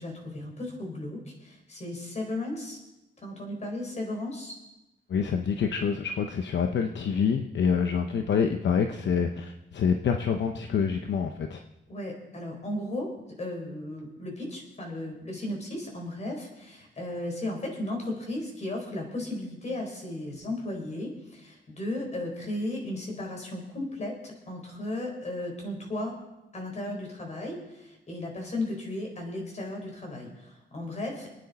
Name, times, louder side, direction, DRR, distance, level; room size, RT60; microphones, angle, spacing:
voice 1, 0.0-2.8 3.2-4.5 11.9-26.1 26.5-31.3, left 1 dB, 35° left, 1 dB, 4.3 m, -35 dB
voice 2, 5.1-11.6, left 6 dB, 65° left, 5 dB, 0.9 m, -26 dB
26.5 x 9.4 x 4.2 m, 0.97 s
wide cardioid pair, 150°, 20 cm